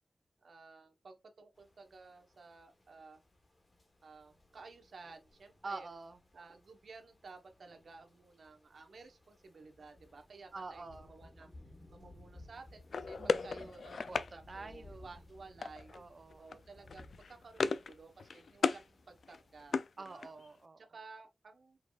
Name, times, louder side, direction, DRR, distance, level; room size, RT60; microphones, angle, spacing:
voice 1, 0.4-3.2 4.0-5.9 6.3-11.5 11.9-15.9 16.4-19.8 20.1-20.3 20.8-21.8, right 4 dB, 80° right, 1.1 m, -54 dB
sound 1, 1.6-19.8, left 2 dB, 35° left, 1.3 m, -60 dB
voice 2, 5.6-6.2 10.5-11.1 13.2-14.2 14.5-15.1 15.9-16.5 20.0-20.8, right 3 dB, 50° right, 0.5 m, -47 dB
sound 2, 12.9-14.3 15.6-16.0 16.3-16.6 16.9-17.9 18.2-18.8 19.2-20.5, left 4 dB, 85° left, 0.3 m, -35 dB
5.7 x 3.9 x 2.4 m
wide cardioid pair, 130°, 0 cm